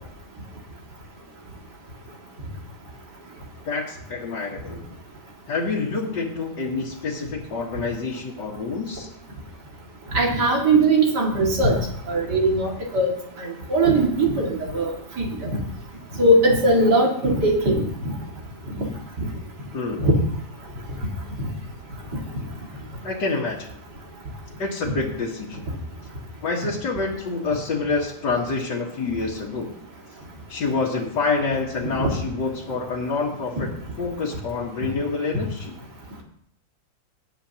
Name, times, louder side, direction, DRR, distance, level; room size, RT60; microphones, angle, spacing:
voice 1, 3.7-4.8 5.5-9.1 19.7-20.1 23.0-23.7 24.6-25.6 26.4-29.7 30.5-33.7 34.0-35.8, left 4 dB, 90° left, -4 dB, 2.2 m, -27 dB
voice 2, 10.1-11.8 12.1-13.1 13.4-14.9 15.4-15.5 16.2-17.8 19.2-19.3 20.0-20.1 32.0-32.1, right 2 dB, 75° right, -1 dB, 2.8 m, -19 dB
19.5 x 9.1 x 2.9 m, 0.68 s
omnidirectional pair, 1.8 m